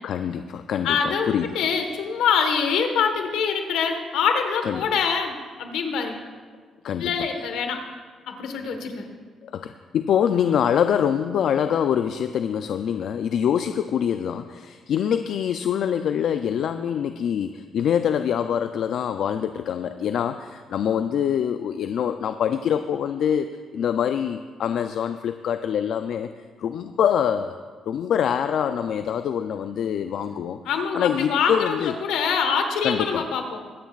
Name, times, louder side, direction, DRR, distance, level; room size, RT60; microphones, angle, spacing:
voice 1, 0.0-1.6 4.6-4.9 6.8-7.1 9.4-26.3 26.6-27.6 27.9-30.6 30.9-31.9 32.8-33.3, left 8 dB, 70° left, 9 dB, 0.4 m, -25 dB
voice 2, 0.8-6.2 7.0-7.8 8.3-9.1 30.6-33.6, left 6 dB, 85° left, 5 dB, 1.3 m, -24 dB
22.5 x 9.2 x 2.4 m, 1.5 s
cardioid pair, 90°, 0 cm